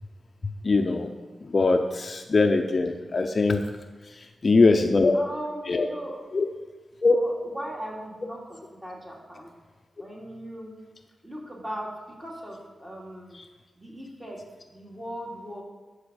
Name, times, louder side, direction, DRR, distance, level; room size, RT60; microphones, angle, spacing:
voice 1, 0.6-1.1 1.4-3.6 4.4-5.1 5.7-5.9 6.3-6.5 7.0-7.2, left 3 dB, 40° left, 5 dB, 0.7 m, -21 dB
voice 2, 5.1-6.6 7.1-9.5 10.0-10.8 11.2-13.4 13.8-14.4 14.7-15.6, right 1 dB, 15° right, -3 dB, 2.6 m, -38 dB
12.5 x 5.0 x 7.0 m, 1.2 s
wide cardioid pair, 110°, 0 cm